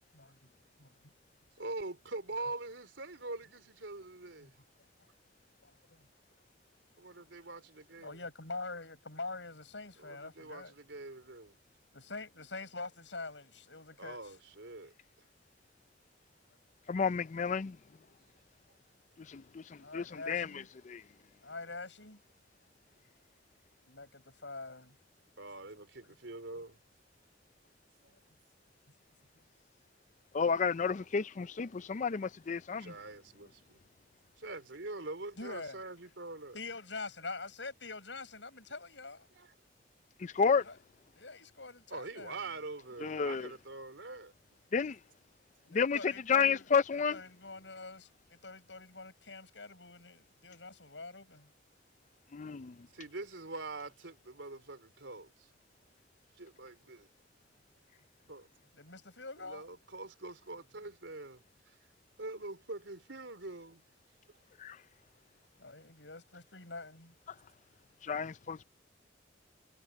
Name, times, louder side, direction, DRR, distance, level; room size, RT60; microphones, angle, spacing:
voice 1, 1.6-4.6 7.0-8.2 10.0-11.5 14.0-14.9 25.4-26.8 32.8-33.8 34.4-36.6 39.3-39.5 41.9-44.3 52.9-55.5 56.4-57.1 58.3-58.5 59.4-61.8 62.2-63.8, right 2 dB, 90° right, 3.8 m, -44 dB
voice 2, 5.6-6.1 8.0-10.7 11.9-14.2 19.8-20.7 21.4-22.2 23.9-25.0 28.1-28.2 35.4-35.8 36.5-39.3 40.6-40.8 41.2-42.5 45.6-51.5 58.7-59.7 65.6-67.1, left 3 dB, 80° left, 7.4 m, -45 dB
voice 3, 16.9-17.8 19.3-20.5 20.8-21.0 30.3-32.9 40.2-40.6 43.0-43.5 44.7-45.0 45.7-47.2 52.3-52.7 64.6-64.8 68.0-68.6, left 6 dB, 40° left, 0.4 m, -31 dB
head